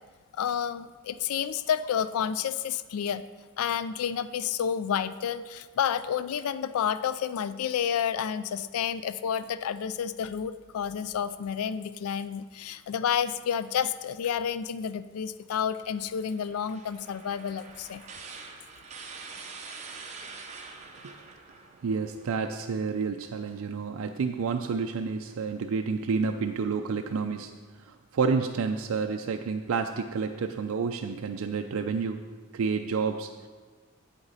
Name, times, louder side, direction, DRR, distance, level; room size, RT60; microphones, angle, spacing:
voice 1, 0.3-3.2 3.6-18.0, left 8 dB, 90° left, 15 dB, 0.3 m, -30 dB
sound 1, 15.8-22.3, right 4 dB, 35° right, 0.9 m, -45 dB
voice 2, 21.8-27.5 27.8-33.5, right 5 dB, 75° right, 4 dB, 0.4 m, -30 dB
8.4 x 7.9 x 4.1 m, 1.4 s
head